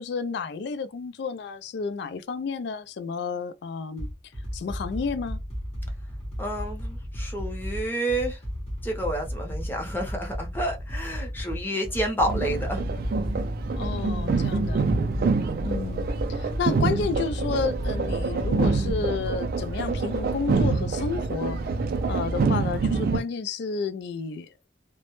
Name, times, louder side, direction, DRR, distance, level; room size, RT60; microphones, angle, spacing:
voice 1, 0.0-4.1 4.5-5.4 13.7-14.8 15.6-21.6 22.1-24.5, left 5 dB, 65° left, 0.3 m, -31 dB
sound 1, 4.0-18.9, equal, 35° left, 0.9 m, -34 dB
voice 2, 6.4-8.4 8.8-12.8, right 1 dB, 10° left, 0.6 m, -29 dB
sound 2, 12.3-23.2, right 4 dB, 50° right, 0.3 m, -26 dB
2.1 x 2.0 x 2.9 m
head